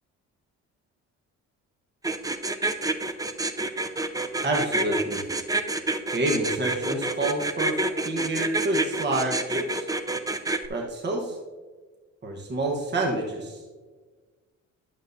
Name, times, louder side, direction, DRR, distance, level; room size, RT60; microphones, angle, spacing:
sound 1, 2.0-10.7, right 2 dB, 10° right, 0.5 m, -27 dB
voice 1, 4.4-5.2 6.1-9.9 10.7-11.4 12.2-13.6, right 2 dB, 35° right, 0 dB, 1.3 m, -28 dB
11.5 x 7.3 x 2.7 m, 1.4 s
cardioid pair, 90°, 30 cm